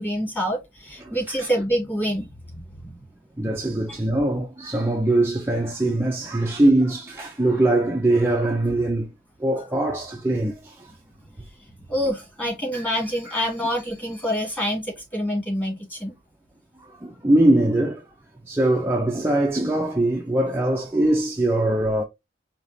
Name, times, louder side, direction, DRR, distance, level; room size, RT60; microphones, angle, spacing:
voice 1, 0.0-3.0 3.9-4.0 11.9-16.1, equal, 10° left, 2.2 m, -27 dB
voice 2, 1.0-1.5 3.4-9.1 9.4-10.9 13.3-13.4 16.8-18.0 18.5-22.0, right 1 dB, 15° right, 0.5 m, -22 dB
4.9 x 2.9 x 2.7 m
head